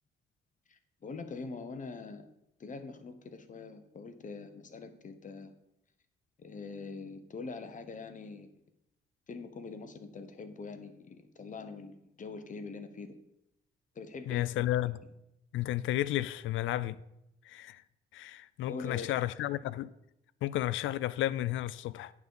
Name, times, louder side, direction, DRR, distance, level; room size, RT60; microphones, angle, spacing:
voice 1, 0.7-2.2 2.6-5.5 6.4-8.5 9.3-13.1 13.9-14.6 18.7-19.1, left 4 dB, 40° left, 1.1 m, -43 dB
voice 2, 14.3-15.0 15.5-17.0 17.5-17.8 18.1-19.9 20.4-22.1, left 14 dB, 80° left, 0.4 m, -32 dB
9.3 x 4.0 x 7.0 m
cardioid pair, 90°, 20 cm